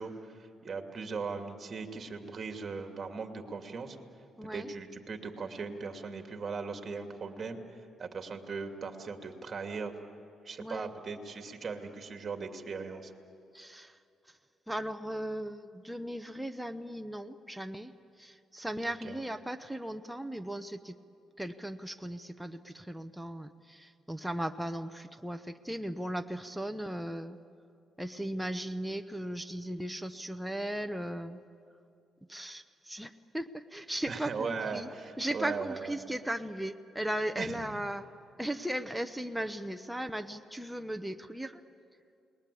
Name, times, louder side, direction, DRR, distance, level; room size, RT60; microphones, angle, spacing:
voice 1, 0.0-4.0 4.5-7.6 8.0-9.9 10.4-13.1 19.0-19.2 34.1-35.9 37.4-37.5, right 4 dB, 40° right, 4 dB, 2.6 m, -38 dB
voice 2, 4.4-4.7 10.6-10.9 13.5-14.0 14.3-14.4 14.7-21.0 21.4-27.4 28.0-31.4 32.3-34.9 35.2-38.1 38.4-41.6, right 1 dB, 5° right, 7 dB, 0.9 m, -37 dB
29.5 x 21.0 x 8.5 m, 2.5 s
cardioid pair, 90°, 0 cm